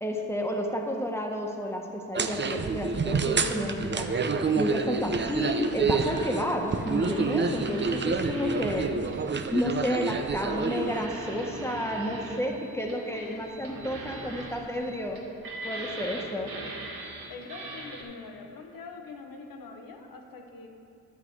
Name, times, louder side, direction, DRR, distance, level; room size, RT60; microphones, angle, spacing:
voice 1, 0.0-4.2 4.5-8.9 9.5-15.2 15.6-16.5, left 1 dB, 5° left, 1 dB, 1.5 m, -31 dB
sound 1, 2.2-11.1, right 4 dB, 30° right, 0.7 m, -28 dB
sound 2, 6.1-18.0, right 2 dB, 70° right, 2.1 m, -41 dB
voice 2, 8.3-8.8 13.1-13.5 15.7-16.5 17.3-20.7, left 4 dB, 70° left, 3 dB, 1.3 m, -45 dB
11.5 x 7.5 x 4.8 m, 2.6 s
cardioid pair, 60°, 36 cm